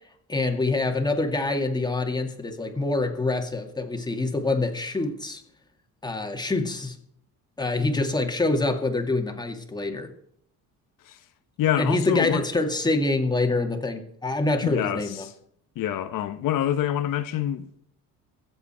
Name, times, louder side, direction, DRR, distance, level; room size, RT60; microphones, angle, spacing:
voice 1, 0.3-5.4 6.0-7.0 7.6-10.1 11.8-15.3, left 2 dB, 10° left, 2.2 m, -25 dB
voice 2, 11.6-12.4 14.6-15.3 15.8-17.8, left 11 dB, 70° left, 1.1 m, -26 dB
23.5 x 8.0 x 4.5 m
cardioid pair, 115°, 34 cm